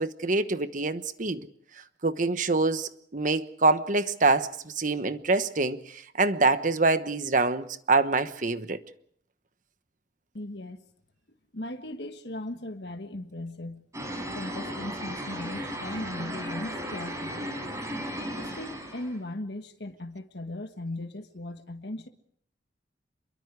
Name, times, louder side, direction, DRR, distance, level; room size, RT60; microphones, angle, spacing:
voice 1, 0.0-1.5 2.0-8.8, right 3 dB, 45° right, 1.1 m, -25 dB
voice 2, 10.3-10.8 11.5-13.8 14.3-17.5 18.3-22.1, left 1 dB, 70° left, 1.6 m, -38 dB
sound 1, 13.9-19.2, equal, 20° right, 5.6 m, -35 dB
27.0 x 23.0 x 4.8 m
head